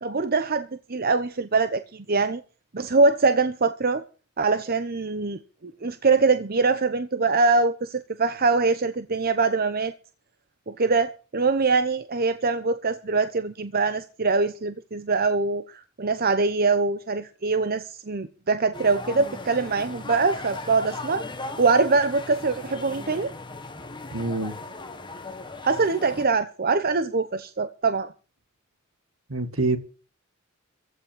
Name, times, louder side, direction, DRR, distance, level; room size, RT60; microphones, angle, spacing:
voice 1, 0.0-2.4 2.7-4.0 4.4-9.9 10.7-21.2 21.6-23.3 25.6-28.1, right 4 dB, 45° right, 0.9 m, -23 dB
sound 1, 18.7-26.2, left 3 dB, 25° left, 1.7 m, -37 dB
voice 2, 24.1-24.6 29.3-29.8, right 2 dB, 70° right, 2.2 m, -25 dB
15.0 x 6.5 x 9.1 m
head